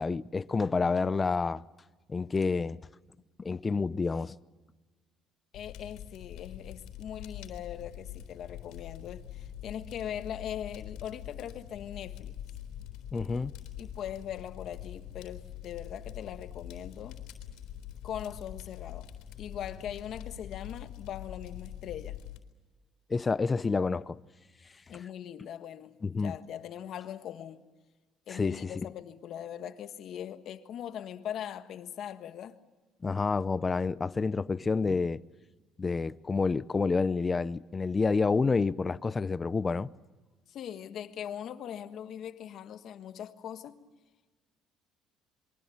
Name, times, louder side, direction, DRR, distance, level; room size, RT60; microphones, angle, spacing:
voice 1, 0.0-1.6 2.1-2.8 3.4-4.4 13.1-13.5 23.1-24.2 24.9-25.0 26.0-26.3 28.3-28.7 33.0-35.2 35.8-39.9, left 4 dB, 25° left, 0.7 m, -29 dB
Fire, 5.5-22.4, left 11 dB, 80° left, 3.8 m, -44 dB
voice 2, 5.5-12.4 13.8-17.2 18.0-19.1 19.4-22.2 24.9-27.6 28.3-32.6 40.5-43.8, left 10 dB, 60° left, 1.5 m, -41 dB
27.0 x 23.5 x 7.3 m
cardioid pair, 100°, 0 cm